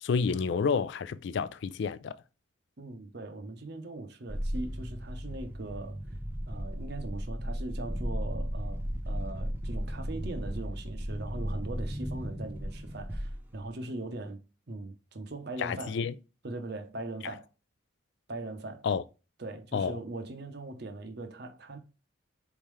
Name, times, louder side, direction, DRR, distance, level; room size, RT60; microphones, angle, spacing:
voice 1, 0.0-2.2 15.6-16.1 18.8-19.0 19.7-19.9, left 5 dB, 60° left, 0.3 m, -29 dB
voice 2, 2.8-6.0 6.5-14.4 14.7-16.0 16.4-17.5 18.3-18.8 19.4-21.8, right 2 dB, 55° right, 0.8 m, -40 dB
sound 1, 4.3-13.7, equal, 10° right, 0.5 m, -35 dB
4.2 x 3.6 x 3.1 m
head